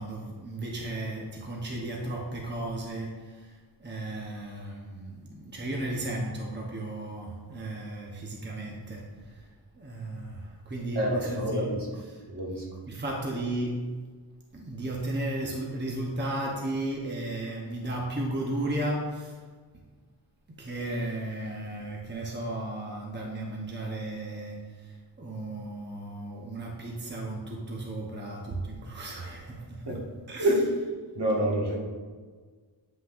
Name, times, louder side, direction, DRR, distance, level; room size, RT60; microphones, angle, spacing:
voice 1, 0.0-11.7 12.1-12.2 12.9-13.9 14.5-19.4 20.5-29.9 30.3-30.5, right 1 dB, 25° right, -1 dB, 0.9 m, -34 dB
voice 2, 10.9-11.9 12.3-12.6 29.9-30.0 30.4-30.7 31.2-31.8, equal, 65° right, -3 dB, 1.9 m, -27 dB
9.7 x 5.8 x 2.6 m, 1.5 s
wide cardioid pair, 115°, 44 cm